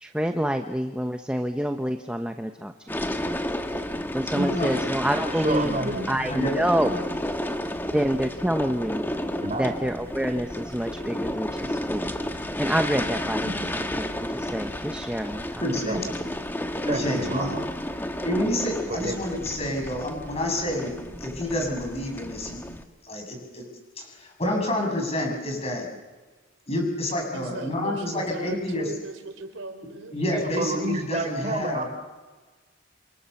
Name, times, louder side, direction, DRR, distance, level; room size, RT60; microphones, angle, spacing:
voice 1, 0.0-3.0 4.1-5.7 6.1-6.9 7.9-9.1 9.6-12.1 12.5-15.6, equal, 5° right, 5 dB, 0.9 m, -27 dB
sound 1, 2.9-22.8, left 1 dB, 10° left, 1.5 m, -32 dB
voice 2, 4.3-4.7 5.6-6.0 6.3-6.5 6.8-7.0 15.6-16.3 16.8-17.6 18.2-22.6 23.0-23.6 24.0-25.9 26.7-28.9 30.1-31.9, left 1 dB, 30° left, 1 dB, 7.9 m, -29 dB
voice 3, 5.1-6.3 9.4-9.7 15.9-16.1 16.9-17.6 18.9-19.2 30.3-31.9, right 1 dB, 35° right, 6 dB, 4.5 m, -30 dB
voice 4, 27.3-30.2, right 2 dB, 80° right, 7 dB, 4.0 m, -37 dB
28.5 x 27.0 x 7.1 m, 1.3 s
head